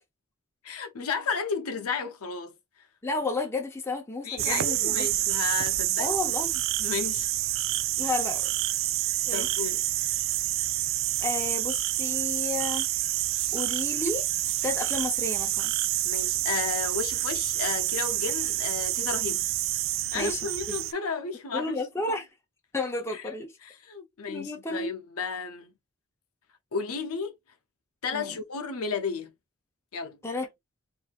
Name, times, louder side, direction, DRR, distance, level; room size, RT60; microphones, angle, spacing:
voice 1, 0.6-2.5 4.2-6.1 6.8-7.3 8.0-8.1 9.3-10.1 16.0-19.4 20.1-21.8 23.1-23.3 23.6-25.7 26.7-27.3 28.0-29.3 29.9-30.2, left 5 dB, 80° left, 0.7 m, -33 dB
voice 2, 3.0-5.2 6.0-6.6 8.0-8.5 9.3-9.5 11.2-12.9 13.5-14.3 14.6-15.7 20.1-20.4 20.7-20.8 21.5-22.3 22.7-23.5 24.3-24.9 28.1-28.4 30.2-30.5, left 3 dB, 10° left, 0.8 m, -32 dB
sound 1, 4.4-20.9, right 15 dB, 60° right, 0.3 m, -28 dB
4.5 x 2.7 x 2.4 m
head